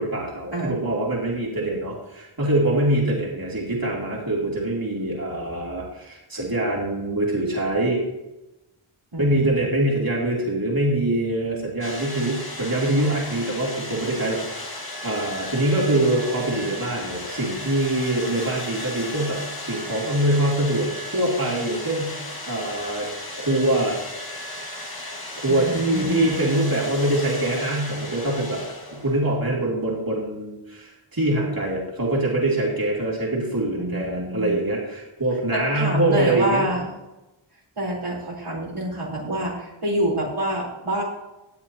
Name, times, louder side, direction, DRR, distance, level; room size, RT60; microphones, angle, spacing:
voice 1, 0.0-8.0 9.2-23.1 23.4-24.0 25.4-28.6 28.9-36.7, right 1 dB, 45° right, -4 dB, 2.9 m, -24 dB
voice 2, 9.1-9.7 25.5-26.4 33.8-34.5 35.5-36.9 37.8-41.0, right 1 dB, 80° right, -4 dB, 4.3 m, -27 dB
sound 1, 11.8-29.3, left 1 dB, 45° left, 2.1 m, -35 dB
17.5 x 9.4 x 3.0 m, 0.97 s
wide cardioid pair, 50°, 50 cm